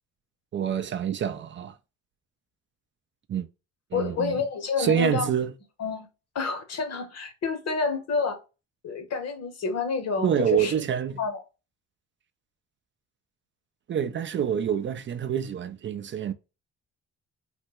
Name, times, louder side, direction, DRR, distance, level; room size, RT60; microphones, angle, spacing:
voice 1, 0.5-1.7 3.3-3.5 3.9-4.4 4.8-5.5 10.2-11.2 13.9-16.3, right 9 dB, 40° right, 0.4 m, -27 dB
voice 2, 3.9-5.3 5.8-6.1 6.3-8.4 8.8-10.7 11.2-11.4, left 5 dB, 55° left, 1.0 m, -29 dB
3.3 x 2.1 x 3.0 m
cardioid pair, 90°, 30 cm